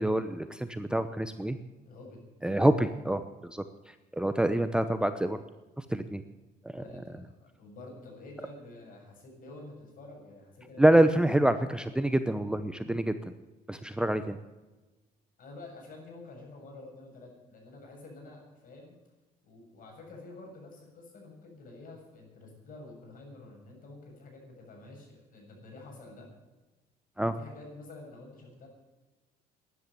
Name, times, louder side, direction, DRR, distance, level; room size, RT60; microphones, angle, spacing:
voice 1, 0.0-1.6 2.4-5.4 5.8-6.2 6.7-6.8 10.8-13.1 13.7-14.4 27.2-27.3, right 1 dB, 5° right, 10 dB, 0.8 m, -26 dB
voice 2, 1.8-2.5 6.8-11.0 11.5-11.6 15.4-18.9 19.4-26.3 27.2-28.7, left 2 dB, 55° left, 1 dB, 7.4 m, -49 dB
13.0 x 11.0 x 8.5 m, 1.1 s
cardioid pair, 110°, 17 cm